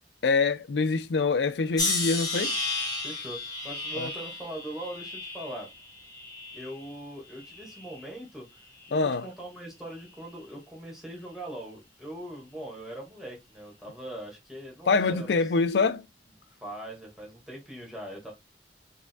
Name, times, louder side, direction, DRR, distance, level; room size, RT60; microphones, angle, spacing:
voice 1, 0.2-2.6 3.9-4.1 8.9-9.3 14.9-16.0, left 4 dB, 70° left, 0.5 m, -25 dB
sound 1, 1.8-6.9 7.4-8.1 8.8-9.1, left 3 dB, 20° left, 1.5 m, -33 dB
voice 2, 3.0-5.7 6.5-8.5 8.9-15.4 16.6-18.3, right 1 dB, ahead, 1.7 m, -41 dB
5.0 x 3.4 x 2.2 m
head